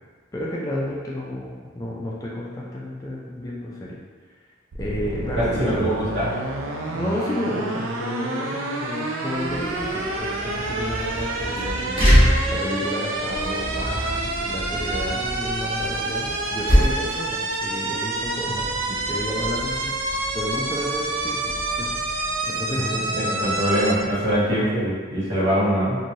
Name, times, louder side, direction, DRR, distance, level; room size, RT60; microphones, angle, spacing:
voice 1, 0.3-4.0 4.7-5.8 6.9-12.0 12.5-18.7 19.1-19.9 20.3-23.5 25.3-25.5, left 1 dB, 15° left, -4 dB, 0.3 m, -31 dB
sound 1, 4.7-23.9, right 2 dB, 90° right, 0.4 m, -28 dB
voice 2, 5.4-6.3 23.4-26.0, equal, 65° right, -10 dB, 1.3 m, -22 dB
sound 2, 9.3-24.7, equal, 30° right, 1.0 m, -27 dB
3.1 x 2.6 x 2.6 m, 1.5 s
head